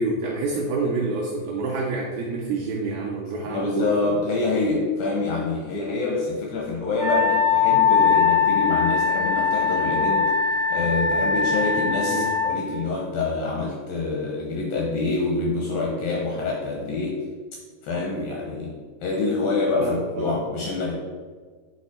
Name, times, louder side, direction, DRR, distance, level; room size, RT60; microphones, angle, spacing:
voice 1, 0.0-4.1 12.1-12.3 19.8-20.3, right 3 dB, 85° right, -2 dB, 2.1 m, -27 dB
voice 2, 3.5-17.2 17.8-21.0, left 3 dB, 80° left, -1 dB, 2.1 m, -26 dB
Wind instrument woodwind instrument, 7.0-12.5, left 6 dB, 50° right, 0.7 m, -21 dB
8.4 x 3.4 x 4.2 m, 1.5 s
omnidirectional pair, 4.9 m